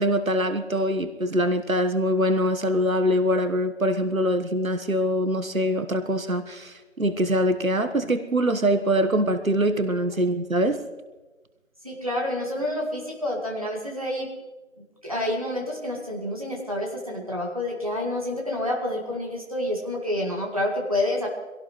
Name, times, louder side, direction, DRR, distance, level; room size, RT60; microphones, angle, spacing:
voice 1, 0.0-10.8, equal, 85° right, 9 dB, 1.4 m, -23 dB
voice 2, 11.8-14.3 15.0-21.3, left 1 dB, 25° right, -2 dB, 2.2 m, -28 dB
25.0 x 17.5 x 3.2 m, 1.2 s
figure-of-eight pair, 180°, 40 cm